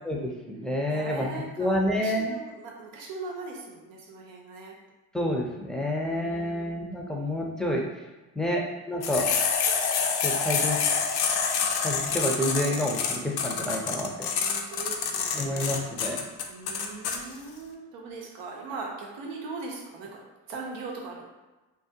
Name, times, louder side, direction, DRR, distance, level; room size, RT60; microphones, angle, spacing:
voice 1, 0.0-1.3 1.6-2.4 5.1-7.8 8.4-9.3 10.2-10.8 11.8-14.3 15.3-16.2, left 1 dB, ahead, -1 dB, 0.5 m, -29 dB
voice 2, 0.9-4.8 6.0-7.0 8.5-9.0 14.3-15.9 16.5-20.2 20.5-21.2, right 3 dB, 90° right, -1 dB, 0.6 m, -40 dB
sound 1, 9.0-17.2, left 6 dB, 60° left, 0.5 m, -27 dB
2.3 x 2.2 x 2.7 m, 1.2 s
supercardioid pair, 50°, 43 cm